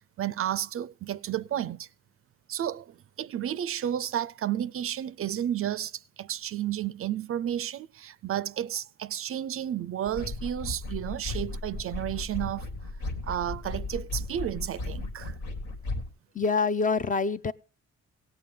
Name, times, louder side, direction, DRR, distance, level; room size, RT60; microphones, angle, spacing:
voice 1, 0.2-1.9 2.5-12.7 13.2-15.4, right 11 dB, 50° right, 0.4 m, -32 dB
sound 1, 10.1-16.1, left 2 dB, 80° left, 1.9 m, -35 dB
voice 2, 16.3-17.5, left 4 dB, 25° left, 0.5 m, -26 dB
17.5 x 7.6 x 3.7 m
cardioid pair, 90°, 30 cm